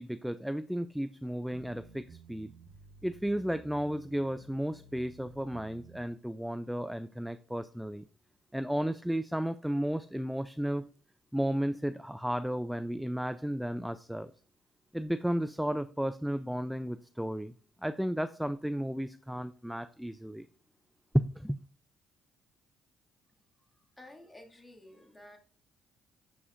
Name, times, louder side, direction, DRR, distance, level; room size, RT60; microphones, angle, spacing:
voice 1, 0.0-2.5 3.0-8.0 8.5-10.9 11.3-14.3 14.9-17.5 17.8-20.5 21.4-21.6, equal, 5° right, 0.3 m, -34 dB
sound 1, 1.5-6.0, right 3 dB, 90° right, 1.3 m, -54 dB
voice 2, 24.0-25.4, left 1 dB, 15° left, 2.0 m, -52 dB
9.9 x 4.2 x 2.4 m
supercardioid pair, 70°, 0 cm